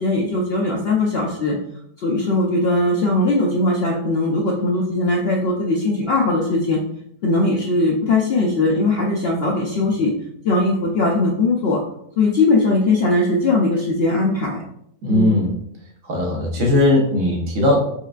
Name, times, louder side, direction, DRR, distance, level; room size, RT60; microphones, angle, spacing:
voice 1, 0.0-1.6 2.0-6.8 7.2-10.1 10.4-11.8 12.2-14.6 15.1-15.4, left 2 dB, 65° left, -2 dB, 0.6 m, -19 dB
voice 2, 15.0-15.5 16.0-17.8, left 1 dB, 65° right, -1 dB, 1.4 m, -18 dB
4.7 x 3.2 x 2.4 m, 0.72 s
omnidirectional pair, 1.6 m